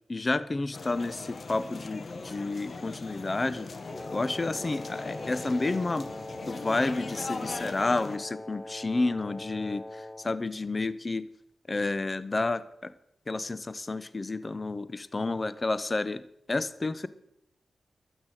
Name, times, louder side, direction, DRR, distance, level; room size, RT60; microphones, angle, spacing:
voice 1, 0.1-3.7 4.1-6.1 6.5-11.3 11.7-12.9 13.3-16.2 16.5-17.1, left 3 dB, 40° left, 16 dB, 0.8 m, -30 dB
sound 1, 0.7-8.2, left 3 dB, 60° left, 1.4 m, -40 dB
Wind instrument woodwind instrument, 3.9-10.4, left 1 dB, 20° left, 1.2 m, -42 dB
13.0 x 8.2 x 8.9 m, 0.77 s
cardioid pair, 45°, 0 cm